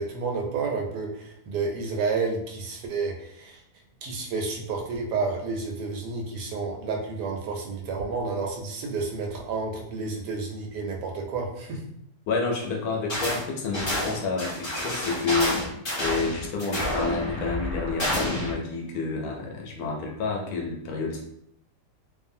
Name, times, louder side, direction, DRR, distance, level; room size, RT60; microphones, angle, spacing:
voice 1, 0.0-3.6 4.0-11.8, right 4 dB, 85° right, 1 dB, 1.2 m, -30 dB
voice 2, 12.3-15.7 16.0-21.2, left 4 dB, 70° left, 1 dB, 1.0 m, -29 dB
sound 1, 13.1-13.4 13.7-18.5, left 1 dB, 45° left, 0.3 m, -29 dB
2.6 x 2.5 x 2.6 m, 0.74 s
omnidirectional pair, 1.7 m